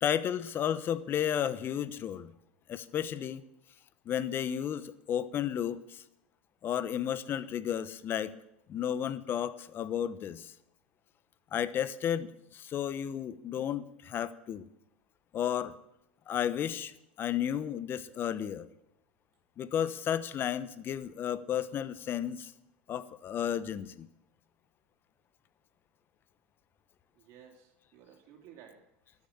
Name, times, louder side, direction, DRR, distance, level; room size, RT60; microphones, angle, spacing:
voice 1, 0.0-2.3 2.7-3.4 4.1-6.0 6.6-8.3 8.7-10.5 11.5-14.6 15.3-15.7 16.3-16.9 17.2-18.7 19.6-22.5 22.9-24.1, left 9 dB, 35° left, 15 dB, 0.9 m, -33 dB
voice 2, 27.1-29.1, right 8 dB, 55° right, 1 dB, 3.1 m, -56 dB
12.5 x 10.5 x 8.6 m, 0.82 s
supercardioid pair, 110°, 6 cm